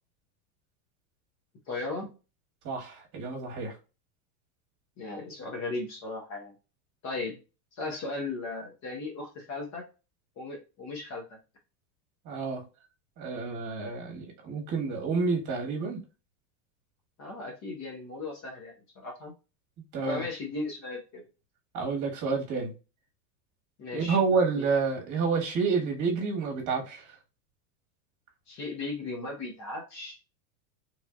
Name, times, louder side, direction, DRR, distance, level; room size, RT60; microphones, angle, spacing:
voice 1, 1.7-2.1 5.0-6.5 7.0-7.4 7.8-9.8 10.4-11.4 17.2-19.3 20.1-21.3 23.8-24.2 24.6-24.7 28.5-30.1, left 3 dB, 35° left, 0.9 m, -36 dB
voice 2, 2.6-3.7 12.2-12.6 13.2-16.0 19.9-20.2 21.7-22.7 23.9-27.1, right 4 dB, 35° right, 1.3 m, -29 dB
3.2 x 2.5 x 2.3 m
supercardioid pair, 110°, 50 cm